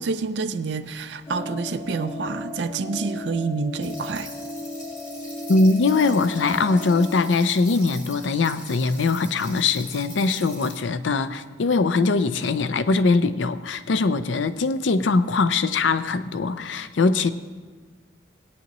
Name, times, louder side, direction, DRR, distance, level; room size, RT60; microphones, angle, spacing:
voice 1, 0.0-4.3, right 4 dB, 70° right, 10 dB, 0.5 m, -28 dB
sound 1, 1.3-7.3, left 2 dB, 25° left, 1.3 m, -35 dB
sound 2, 3.8-10.7, left 1 dB, 40° left, 3.0 m, -43 dB
voice 2, 5.5-17.3, left 3 dB, 90° left, 13 dB, 0.5 m, -21 dB
17.5 x 9.3 x 3.0 m, 1.4 s
head